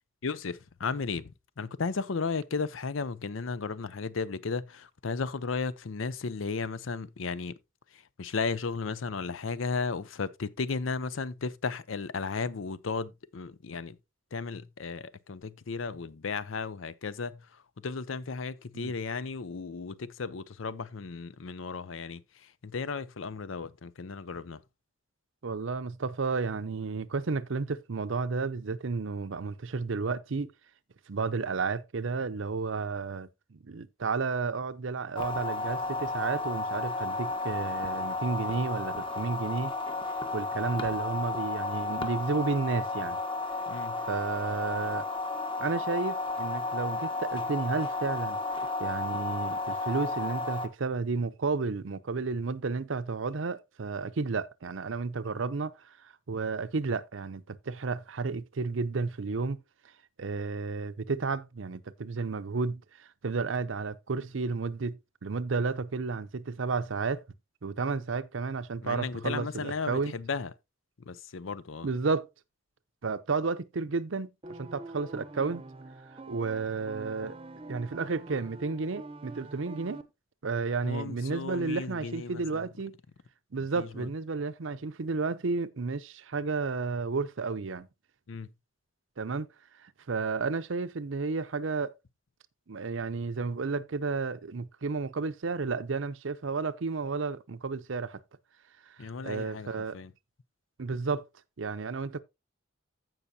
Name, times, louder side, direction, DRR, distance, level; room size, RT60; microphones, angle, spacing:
voice 1, 0.2-7.6 7.9-14.0 14.3-24.6 43.7-44.0 68.8-70.5 71.0-71.9 80.8-82.7 83.8-84.1 88.3-88.5 99.0-100.1, left 4 dB, 80° left, 0.6 m, -35 dB
voice 2, 25.4-30.5 31.1-39.7 40.3-43.2 44.1-45.1 45.6-48.4 48.8-55.7 56.3-59.6 60.2-67.2 67.6-70.1 71.8-72.3 73.0-75.6 76.3-77.3 77.7-80.0 80.4-83.0 83.5-87.9 89.2-89.5 90.1-91.9 92.7-98.2 99.2-100.0 100.8-101.3 101.6-102.2, right 4 dB, 75° right, 0.7 m, -32 dB
sound 1, 35.2-50.7, left 2 dB, 25° left, 1.1 m, -33 dB
sound 2, 74.4-80.0, right 2 dB, 30° right, 0.7 m, -45 dB
15.5 x 5.6 x 2.7 m
head